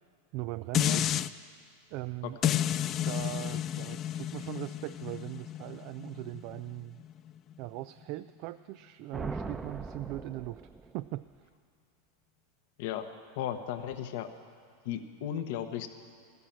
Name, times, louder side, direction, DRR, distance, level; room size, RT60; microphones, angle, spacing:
voice 1, 0.3-1.1 1.9-2.4 3.1-7.0 7.6-11.2, right 18 dB, 55° right, 13 dB, 0.3 m, -40 dB
sound 1, 0.7-1.3 2.4-7.6 8.0-8.1, left 11 dB, 40° left, 0.4 m, -32 dB
sound 2, 9.1-11.1, right 3 dB, 15° right, 0.8 m, -40 dB
voice 2, 13.4-14.3 14.8-15.9, left 10 dB, 65° left, 9 dB, 1.0 m, -35 dB
13.5 x 9.6 x 7.4 m, 2.3 s
hypercardioid pair, 105°, 0 cm